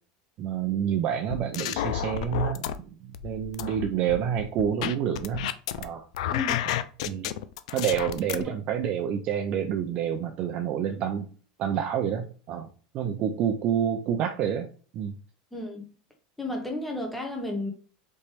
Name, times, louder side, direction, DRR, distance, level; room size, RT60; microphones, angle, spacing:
voice 1, 0.4-5.5 5.8-6.0 7.0-7.3 7.7-11.3 11.6-12.7 12.9-14.7 14.9-15.1, right 9 dB, 40° right, 0.5 m, -28 dB
sound 1, 1.3-2.7 3.1-5.8 6.1-8.4, left 11 dB, 75° left, 0.4 m, -30 dB
voice 2, 6.3-6.6 15.5-15.9 16.4-17.7, left 2 dB, 5° left, 1.1 m, -32 dB
4.3 x 3.0 x 3.3 m
supercardioid pair, 145°, 3 cm